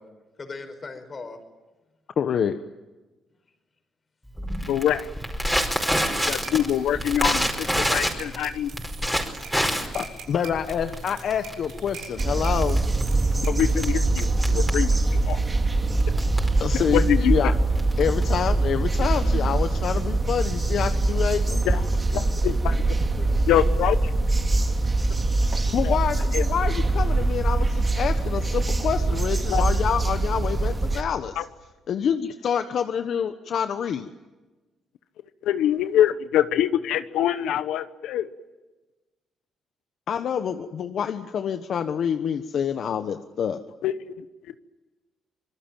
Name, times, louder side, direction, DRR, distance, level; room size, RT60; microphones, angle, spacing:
voice 1, 0.4-1.4 9.8-10.0 10.3-10.4 22.7-23.5, left 3 dB, 35° left, 8 dB, 5.2 m, -40 dB
voice 2, 2.2-2.5 9.9-12.8 16.6-17.5 18.0-21.6 25.7-31.4 31.9-34.1 40.1-43.6, left 8 dB, 60° left, 8 dB, 1.2 m, -27 dB
Crackle, 4.4-18.6, equal, ahead, 5.0 m, -28 dB
voice 3, 4.7-5.1 6.2-8.7 13.4-15.4 16.9-17.5 21.6-21.8 22.1-22.7 23.5-24.1 25.8-26.0 26.3-26.4 29.5-29.6 31.4-31.5 35.4-38.3 43.8-44.2, left 11 dB, 85° left, 12 dB, 1.0 m, -24 dB
sound 1, 5.9-13.9, right 6 dB, 75° right, 5.8 m, -44 dB
sound 2, 12.2-31.0, right 2 dB, 25° right, 2.7 m, -23 dB
25.5 x 21.0 x 9.1 m, 1.2 s
cardioid pair, 90°, 0 cm